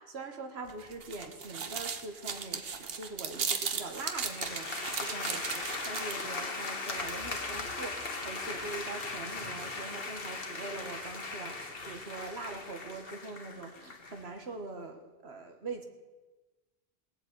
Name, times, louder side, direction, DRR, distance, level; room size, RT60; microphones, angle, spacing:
voice 1, 0.0-15.8, right 3 dB, 90° right, 5 dB, 1.7 m, -43 dB
sound 1, 0.7-6.4, right 6 dB, 70° right, 1.2 m, -37 dB
sound 2, 3.9-14.2, left 3 dB, 65° left, 1.7 m, -38 dB
18.0 x 8.4 x 8.1 m, 1.2 s
omnidirectional pair, 1.1 m